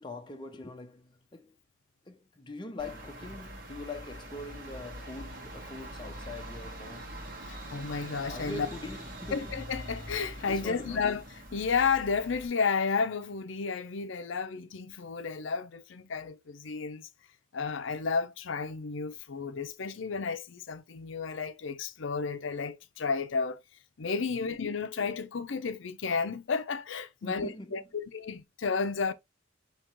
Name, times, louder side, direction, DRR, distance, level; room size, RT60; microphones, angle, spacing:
voice 1, 0.0-1.6 2.1-7.1 8.3-9.5 10.5-11.1 24.3-24.6 27.2-27.9, left 2 dB, 25° left, 0.6 m, -43 dB
sound 1, 2.8-12.5, right 1 dB, 45° right, 1.4 m, -43 dB
voice 2, 7.5-8.7 9.3-11.2 11.5-17.1 17.5-23.6 24.0-29.1, left 5 dB, 70° left, 0.5 m, -32 dB
5.8 x 2.9 x 3.0 m
head